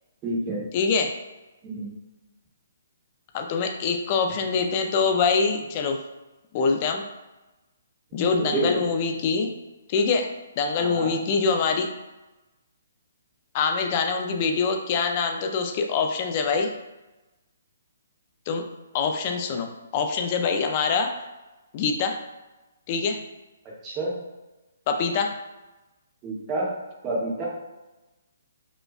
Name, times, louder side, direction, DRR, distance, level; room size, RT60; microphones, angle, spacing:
voice 1, 0.2-0.6 1.6-1.9 8.1-8.8 10.8-11.1 23.8-24.1 26.2-26.7 27.0-27.4, right 2 dB, 15° right, -5 dB, 0.8 m, -28 dB
voice 2, 0.7-1.1 3.3-6.0 6.5-7.0 8.1-9.5 9.9-11.9 13.5-16.7 18.5-18.6 18.9-21.1 21.7-22.2 22.9-23.2 24.9-25.4, left 5 dB, 25° left, 4 dB, 0.3 m, -24 dB
5.0 x 2.1 x 2.3 m, 1.1 s
hypercardioid pair, 170°, 0 cm